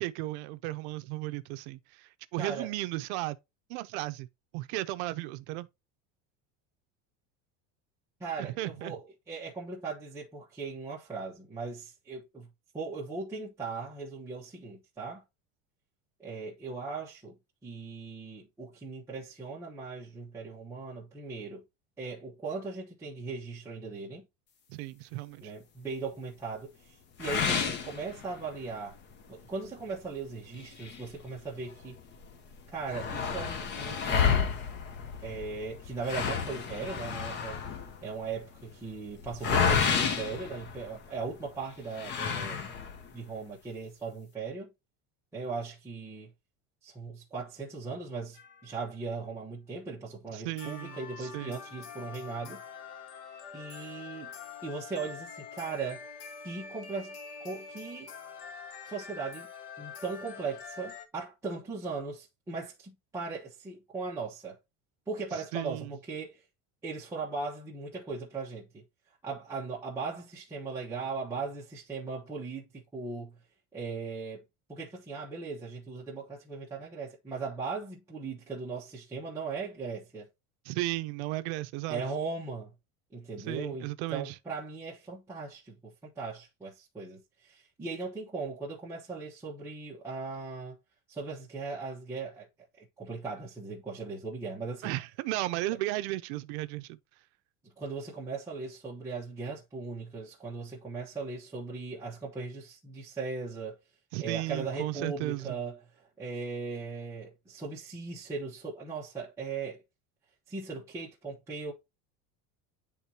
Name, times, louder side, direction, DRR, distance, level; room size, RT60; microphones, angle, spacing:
voice 1, 0.0-3.4 3.7-4.3 4.5-5.7 8.4-9.0 24.7-25.5 50.3-51.6 65.5-66.0 80.7-82.0 83.5-84.4 94.8-97.0 104.1-105.6, right 18 dB, 70° right, 0.6 m, -35 dB
voice 2, 2.4-2.7 8.2-9.0 9.3-12.5 12.7-15.2 16.2-17.4 17.6-21.6 22.0-24.2 25.4-29.0 29.3-32.0 32.7-34.5 35.2-37.6 38.0-42.7 43.1-44.7 45.3-46.3 46.8-52.6 53.5-54.3 54.6-56.0 56.4-57.2 57.4-58.1 58.8-59.5 59.8-64.6 65.1-66.4 66.8-68.8 69.2-73.4 73.7-74.4 74.7-80.3 81.9-82.7 83.1-90.8 91.1-92.5 92.8-94.9 97.6-103.8 104.2-109.8 110.5-111.7, right 4 dB, 10° right, 1.0 m, -38 dB
sound 1, 27.2-28.7 29.1-29.2 29.7-29.8 30.5-31.9 32.2-32.3 32.5-41.3 41.9-43.1, left 6 dB, 30° left, 0.7 m, -31 dB
sound 2, 48.3-49.0 50.6-61.1, left 5 dB, 85° left, 1.2 m, -45 dB
10.0 x 3.7 x 2.8 m
cardioid pair, 170°, 35 cm